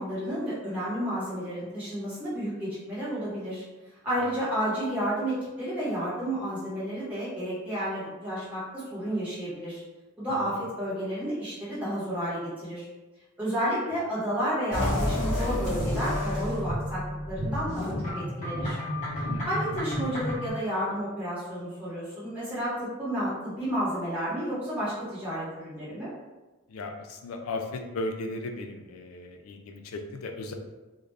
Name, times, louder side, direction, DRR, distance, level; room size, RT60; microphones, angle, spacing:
voice 1, 0.0-3.6 4.0-9.8 10.2-12.9 13.4-18.8 19.4-26.1, equal, 5° right, -11 dB, 1.1 m, -31 dB
sound 1, 14.7-20.5, left 1 dB, 35° left, 0.7 m, -30 dB
voice 2, 26.7-30.5, left 2 dB, 75° left, 4 dB, 0.4 m, -36 dB
2.4 x 2.1 x 3.2 m, 1.1 s
head